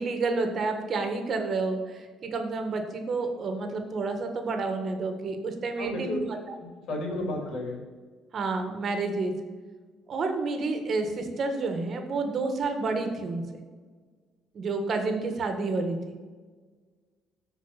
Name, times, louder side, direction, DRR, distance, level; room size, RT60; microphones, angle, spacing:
voice 1, 0.0-6.4 7.1-7.3 8.3-9.3 10.1-13.4 14.5-16.2, right 3 dB, 50° right, 6 dB, 1.6 m, -29 dB
voice 2, 5.8-6.2 6.6-7.8, left 2 dB, 70° left, 1 dB, 2.9 m, -33 dB
14.0 x 4.6 x 5.8 m, 1.5 s
cardioid pair, 100°, 0 cm